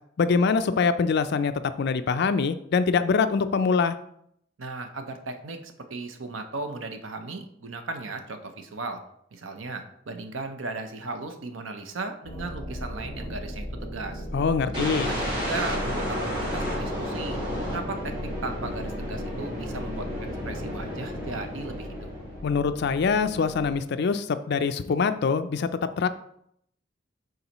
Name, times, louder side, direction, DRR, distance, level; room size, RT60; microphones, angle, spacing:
voice 1, 0.2-4.0 14.3-15.1 22.4-25.7 26.0-26.1, left 5 dB, 60° left, 11 dB, 0.4 m, -24 dB
voice 2, 4.6-9.0 9.3-14.3 14.6-17.4 17.7-20.1 20.4-22.1, right 3 dB, 85° right, 7 dB, 0.7 m, -36 dB
sound 1, 12.2-23.7, equal, 20° left, 2.2 m, -37 dB
sound 2, 14.7-22.6, equal, 25° right, 1.9 m, -32 dB
9.4 x 3.9 x 3.0 m, 0.72 s
head